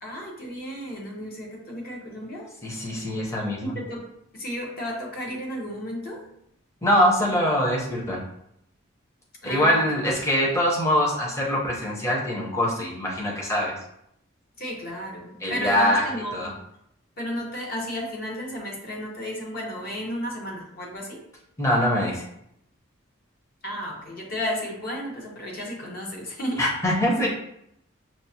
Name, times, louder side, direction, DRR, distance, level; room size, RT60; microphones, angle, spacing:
voice 1, 0.0-2.5 3.6-4.1 4.3-6.2 9.4-10.2 14.6-16.5 17.2-21.2 23.6-26.7, equal, 45° left, -2 dB, 0.8 m, -33 dB
voice 2, 2.6-3.7 6.8-8.2 9.4-13.7 15.4-16.0 16.3-16.5 21.6-22.2 26.6-27.3, equal, 15° left, -3 dB, 0.7 m, -23 dB
6.0 x 2.0 x 2.7 m, 0.76 s
head